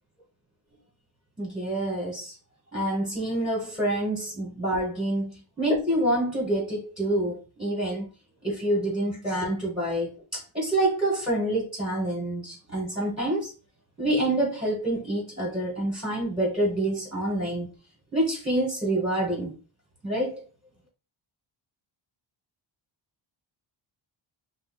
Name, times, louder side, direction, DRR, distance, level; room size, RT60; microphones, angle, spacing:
voice 1, 1.4-2.3 2.7-8.0 8.4-13.5 14.0-17.7 18.1-19.5 20.0-20.4, right 1 dB, 10° right, 1.0 m, -27 dB
2.6 x 2.1 x 3.8 m
wide cardioid pair, 125°, 48 cm